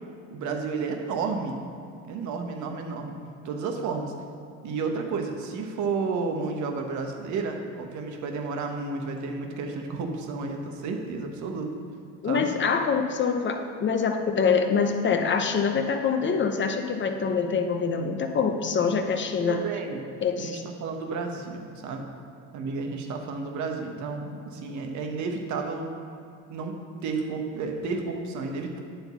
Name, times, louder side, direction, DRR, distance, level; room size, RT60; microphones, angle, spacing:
voice 1, 0.3-1.6 2.0-3.2 3.4-4.1 4.6-11.7 12.3-12.5 19.4-20.1 20.4-22.1 22.5-25.9 26.5-26.7 27.0-28.8, right 4 dB, 60° right, 3 dB, 1.1 m, -31 dB
voice 2, 12.2-19.6 20.2-20.6, left 5 dB, 35° left, 5 dB, 0.8 m, -25 dB
9.7 x 3.9 x 6.0 m, 2.6 s
supercardioid pair, 85°, 33 cm